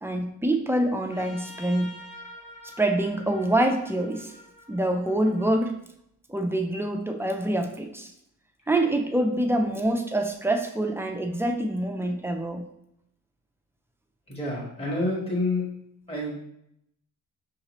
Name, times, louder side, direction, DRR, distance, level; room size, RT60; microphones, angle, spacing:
voice 1, 0.0-1.9 2.8-4.3 4.7-5.7 6.3-8.1 8.7-12.6, right 1 dB, 10° right, 4 dB, 0.4 m, -25 dB
Trumpet, 1.1-5.6, left 1 dB, 75° left, 0.8 m, -47 dB
voice 2, 14.3-15.6 16.1-16.4, left 2 dB, 20° left, -5 dB, 1.2 m, -28 dB
5.6 x 2.8 x 2.9 m, 0.75 s
wide cardioid pair, 135°, 32 cm